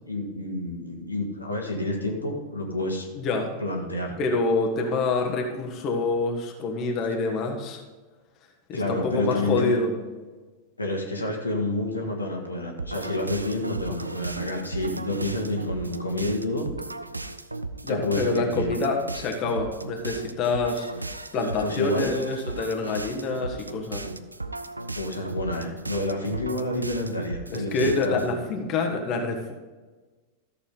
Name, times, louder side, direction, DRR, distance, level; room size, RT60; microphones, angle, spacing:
voice 1, 0.1-4.2 7.2-7.3 8.7-9.9 10.8-16.7 17.9-18.8 21.6-22.1 24.9-28.2, left 1 dB, 80° left, 0 dB, 1.7 m, -29 dB
voice 2, 3.1-3.5 4.2-7.8 8.7-9.9 17.8-20.9 21.3-24.0 27.5-29.5, left 3 dB, 35° left, 2 dB, 1.4 m, -26 dB
sound 1, 12.8-28.3, right 3 dB, 85° right, 0.4 m, -36 dB
14.0 x 6.9 x 3.9 m, 1.3 s
figure-of-eight pair, 90°, 0 cm